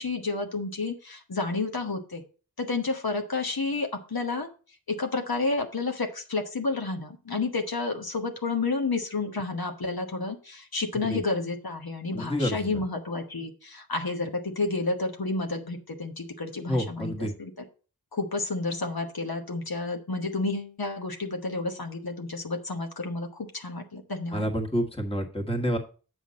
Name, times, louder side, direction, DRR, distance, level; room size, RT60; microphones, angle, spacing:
voice 1, 0.0-2.2 2.6-4.5 4.9-17.5 18.1-24.5, left 3 dB, 75° left, 4 dB, 1.1 m, -30 dB
voice 2, 12.1-12.8 16.7-17.3 24.3-25.8, equal, 15° left, 2 dB, 1.5 m, -28 dB
8.1 x 5.8 x 4.0 m, 0.36 s
wide cardioid pair, 45°, 37 cm